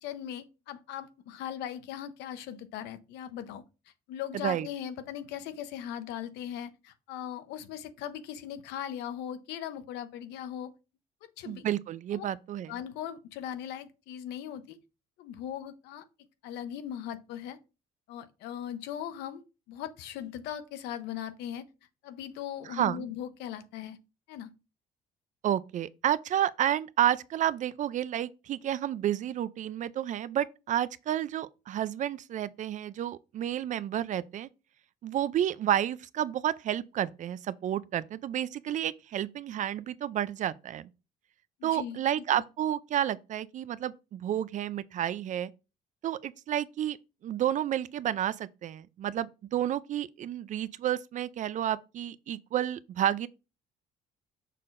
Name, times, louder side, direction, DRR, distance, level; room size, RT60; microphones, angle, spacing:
voice 1, 0.0-3.6 4.1-10.7 11.2-11.6 12.1-12.2 12.7-14.8 15.2-16.0 16.4-17.6 18.1-19.4 19.7-21.6 22.0-24.0 24.3-24.5 41.6-42.4, left 10 dB, 85° left, 0.8 m, -39 dB
voice 2, 4.3-4.7 11.5-12.7 22.7-23.0 25.4-34.5 35.0-40.9 41.6-45.5 46.0-47.0 47.2-53.3, right 11 dB, 50° right, 0.4 m, -30 dB
6.6 x 5.7 x 2.5 m
cardioid pair, 110°, 17 cm